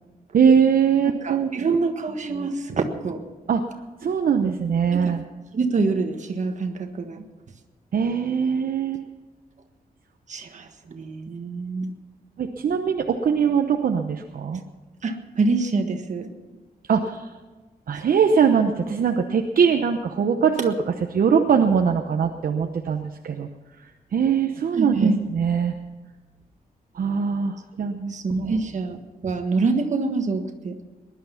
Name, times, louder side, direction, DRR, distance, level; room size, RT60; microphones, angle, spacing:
voice 1, 0.3-1.5 3.5-3.6 4.0-5.2 7.9-9.0 12.4-14.6 16.9-17.2 17.9-20.7 21.1-23.5 24.1-25.7 27.0-28.1 28.4-28.5, right 6 dB, 65° right, 4 dB, 0.9 m, -21 dB
voice 2, 1.2-3.2 4.9-5.2 5.5-7.2 10.3-11.9 15.0-16.3 24.7-25.2 28.1-29.0 29.2-30.8, right 3 dB, 50° right, 6 dB, 1.5 m, -25 dB
19.5 x 11.5 x 5.7 m, 1.3 s
wide cardioid pair, 180°, 16 cm